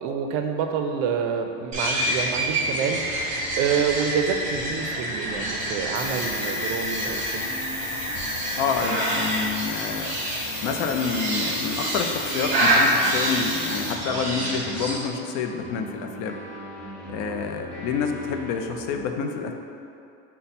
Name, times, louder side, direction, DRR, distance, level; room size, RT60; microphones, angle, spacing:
voice 1, 0.0-7.5, right 6 dB, 70° right, 5 dB, 0.5 m, -27 dB
sound 1, 1.7-15.0, right 1 dB, 25° right, 0.8 m, -27 dB
sound 2, 2.1-19.0, right 2 dB, 5° left, 0.6 m, -41 dB
sound 3, 5.9-13.9, left 4 dB, 90° left, 0.8 m, -36 dB
voice 2, 8.6-10.2 10.6-16.4 17.1-19.5, left 5 dB, 60° left, 4 dB, 0.4 m, -28 dB
5.3 x 2.1 x 4.1 m, 2.6 s
cardioid pair, 160°, 33 cm